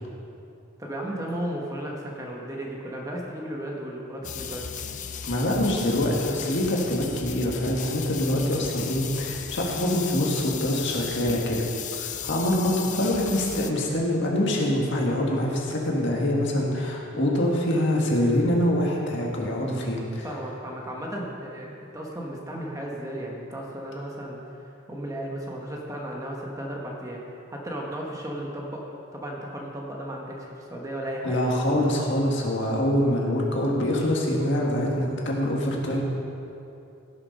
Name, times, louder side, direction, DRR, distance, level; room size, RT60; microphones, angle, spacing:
voice 1, 0.8-4.7 20.2-24.4 24.9-28.8 29.1-31.4, right 1 dB, 15° right, -2 dB, 1.3 m, -34 dB
sound 1, 4.2-13.7, left 8 dB, 35° left, 0.5 m, -36 dB
voice 2, 5.2-11.6 12.0-20.3 31.2-36.0, left 1 dB, 55° left, -2 dB, 1.9 m, -25 dB
16.5 x 6.8 x 5.4 m, 2.7 s
head